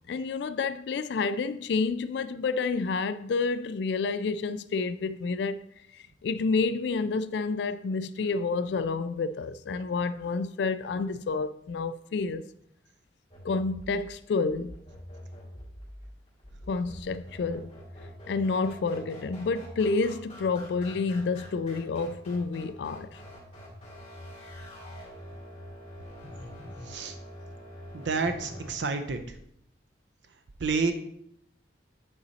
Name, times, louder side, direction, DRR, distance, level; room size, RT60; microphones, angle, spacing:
voice 1, 0.1-5.6 6.2-12.5 13.4-14.7 16.7-17.7 18.3-23.2, left 4 dB, 70° left, 0.3 m, -29 dB
sound 1, 13.3-28.7, equal, 35° left, 3.2 m, -45 dB
voice 2, 27.9-29.2 30.6-30.9, right 4 dB, 80° right, 0.6 m, -29 dB
9.4 x 4.0 x 4.2 m
head